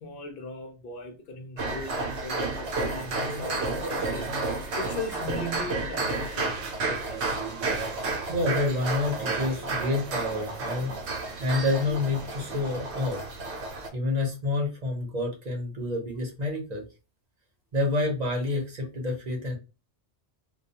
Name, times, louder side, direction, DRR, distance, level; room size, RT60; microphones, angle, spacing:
voice 1, 0.0-4.3 4.8-7.4 8.0-8.3, left 2 dB, 60° left, 0.7 m, -39 dB
sound 1, 1.6-13.9, right 3 dB, 80° right, 1.0 m, -31 dB
voice 2, 8.3-11.0 11.4-13.2 13.9-16.8 17.7-19.6, left 2 dB, 40° right, 0.8 m, -28 dB
2.3 x 2.2 x 2.7 m
omnidirectional pair, 1.1 m